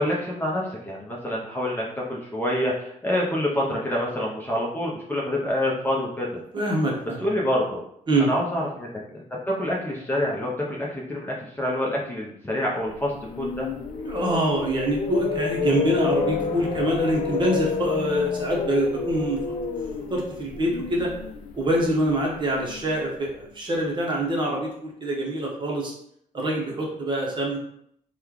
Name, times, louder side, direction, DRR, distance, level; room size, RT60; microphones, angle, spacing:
voice 1, 0.0-6.4 7.2-7.8 8.3-9.2 9.6-13.7, left 1 dB, 15° left, -4 dB, 0.6 m, -27 dB
voice 2, 6.5-7.2 8.1-8.3 14.0-19.4 20.1-21.1 21.5-25.9 26.3-27.6, right 1 dB, 35° right, -2 dB, 0.8 m, -25 dB
sound 1, 13.0-23.1, left 5 dB, 65° left, 0.5 m, -30 dB
3.1 x 2.2 x 3.6 m, 0.71 s
cardioid pair, 155°, 14 cm